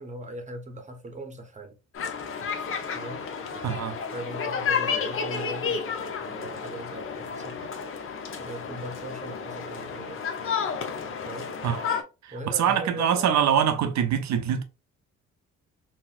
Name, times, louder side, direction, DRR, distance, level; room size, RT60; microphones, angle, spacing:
voice 1, 0.0-1.7 2.9-3.3 4.1-7.7 8.4-10.3 11.2-11.5 12.3-13.4, right 1 dB, 25° right, 0.8 m, -39 dB
sound 1, 1.9-12.0, left 6 dB, 45° left, 0.7 m, -31 dB
voice 2, 3.6-4.0 11.6-11.8 12.2-14.6, right 8 dB, 65° right, 0.6 m, -24 dB
4.0 x 2.0 x 2.4 m
cardioid pair, 90°, 30 cm